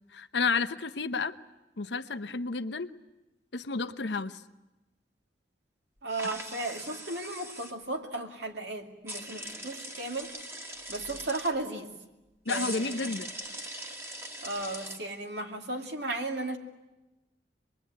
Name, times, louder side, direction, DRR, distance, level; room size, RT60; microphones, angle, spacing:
voice 1, 0.1-1.3 1.8-2.9 3.5-4.4 12.5-13.3, left 4 dB, 75° left, 11 dB, 0.9 m, -31 dB
voice 2, 6.0-10.3 10.9-11.9 12.5-13.1 14.4-16.6, right 2 dB, 70° right, 3 dB, 2.5 m, -35 dB
sound 1, 6.1-7.7 9.1-11.5 12.5-15.0, right 1 dB, 15° right, 1.9 m, -41 dB
25.5 x 21.0 x 9.5 m, 1.0 s
head